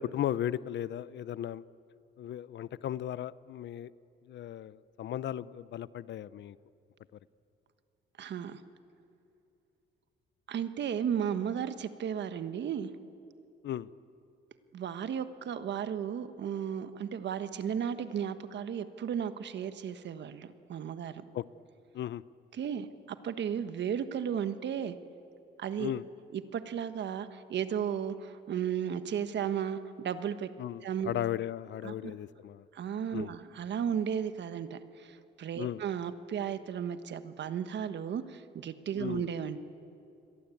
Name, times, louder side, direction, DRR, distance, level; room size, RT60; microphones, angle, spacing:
voice 1, 0.0-1.6 2.2-3.9 4.3-6.6 13.6-13.9 21.3-21.4 21.9-22.2 25.8-26.0 30.6-32.6 33.1-33.3 35.6-35.8 39.0-39.3, left 11 dB, 65° left, 18 dB, 0.7 m, -36 dB
voice 2, 8.2-8.6 10.5-12.9 14.7-21.2 22.5-24.9 25.6-25.9 26.3-30.5 30.8-31.1 31.8-32.1 32.7-39.6, right 8 dB, 65° right, 11 dB, 1.4 m, -34 dB
29.0 x 22.5 x 8.5 m, 2.7 s
cardioid pair, 90°, 20 cm